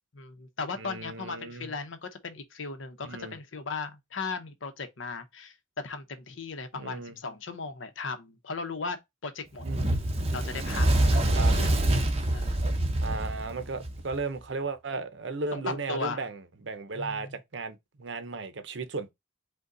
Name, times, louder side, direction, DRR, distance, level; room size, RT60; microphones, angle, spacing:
voice 1, 0.1-5.5 5.8-9.6 10.3-11.8 12.3-12.6 15.5-16.3 16.9-17.4, left 4 dB, 75° left, 0.8 m, -37 dB
voice 2, 0.8-1.7 3.0-3.4 6.7-7.2 9.6-10.0 11.4-11.6 13.0-19.1, right 3 dB, 65° right, 0.7 m, -35 dB
Fire, 9.6-14.2, right 1 dB, 30° right, 0.7 m, -25 dB
5.3 x 2.3 x 3.8 m
head